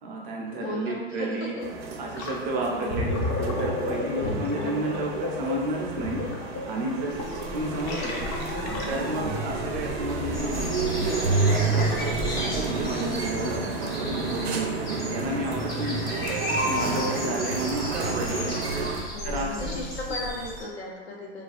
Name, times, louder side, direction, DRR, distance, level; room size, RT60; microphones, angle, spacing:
voice 1, 0.0-1.6 2.0-3.1 3.6-6.2 6.6-7.2 7.5-8.2 8.9-11.1 11.7-14.7 15.1-16.3 16.7-18.6 19.2-19.9, right 2 dB, 25° right, -2 dB, 0.4 m, -32 dB
voice 2, 0.6-1.7 2.2-2.3 2.7-3.1 4.2-5.1 9.0-9.4 17.0-17.6 19.1-21.4, left 2 dB, 85° left, -2 dB, 0.7 m, -37 dB
sound 1, 1.6-19.0, right 3 dB, 80° right, 0.5 m, -30 dB
Gurgling, 2.2-2.4 2.7-9.2, left 2 dB, 35° left, 0.4 m, -31 dB
sound 2, 7.1-20.6, left 1 dB, 65° left, 1.2 m, -36 dB
2.4 x 2.2 x 2.4 m, 1.3 s
hypercardioid pair, 105°, 31 cm